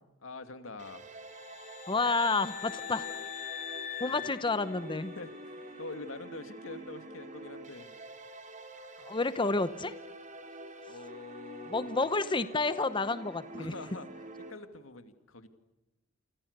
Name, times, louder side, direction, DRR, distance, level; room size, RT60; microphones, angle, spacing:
voice 1, 0.2-1.0 4.0-4.2 5.2-7.9 10.9-12.0 13.6-14.1 14.5-15.5, left 3 dB, 85° left, 9 dB, 2.5 m, -45 dB
sound 1, 0.8-14.5, right 1 dB, 40° right, 4.1 m, -47 dB
sound 2, 1.3-5.3, left 10 dB, 40° left, 1.5 m, -42 dB
voice 2, 1.9-3.1 4.0-5.1 9.0-9.9 11.7-13.7, left 3 dB, 25° left, 13 dB, 0.9 m, -30 dB
29.5 x 26.0 x 6.7 m, 0.99 s
head